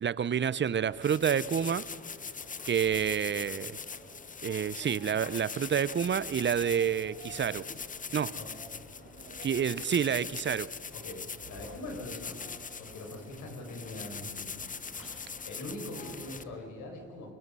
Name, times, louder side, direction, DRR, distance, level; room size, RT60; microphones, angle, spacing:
voice 1, 0.0-1.8 2.6-3.8 4.4-7.6 8.1-8.3 9.4-10.7, right 8 dB, 40° right, 19 dB, 0.7 m, -28 dB
sound 1, 0.6-16.6, left 2 dB, 45° left, 6.2 m, -54 dB
sound 2, 1.0-16.4, left 5 dB, 25° left, 0.8 m, -42 dB
sound 3, 5.8-16.5, right 3 dB, 85° right, 6.0 m, -56 dB
voice 2, 10.9-12.4 12.8-14.7 15.4-17.3, left 2 dB, 80° left, 2 dB, 6.1 m, -42 dB
28.5 x 23.5 x 5.6 m, 2.4 s
cardioid pair, 90°, 30 cm